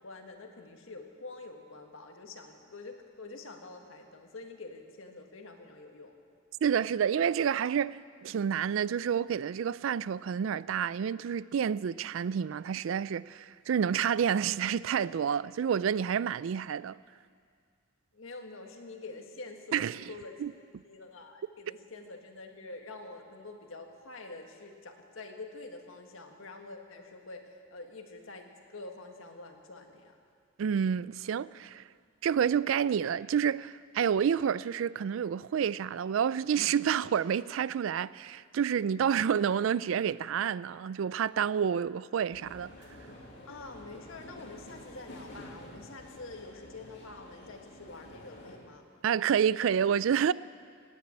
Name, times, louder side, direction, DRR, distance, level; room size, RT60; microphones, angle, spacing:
voice 1, 0.0-6.2 18.1-20.4 20.8-30.2 43.5-49.0, left 3 dB, 80° left, 1.7 m, -46 dB
voice 2, 6.6-8.0 8.2-16.9 19.7-20.0 20.4-20.5 30.6-31.8 32.2-42.7 49.0-50.3, right 8 dB, 75° right, 0.3 m, -29 dB
sound 1, 42.3-48.6, left 1 dB, 60° left, 2.4 m, -49 dB
17.5 x 9.3 x 8.8 m
head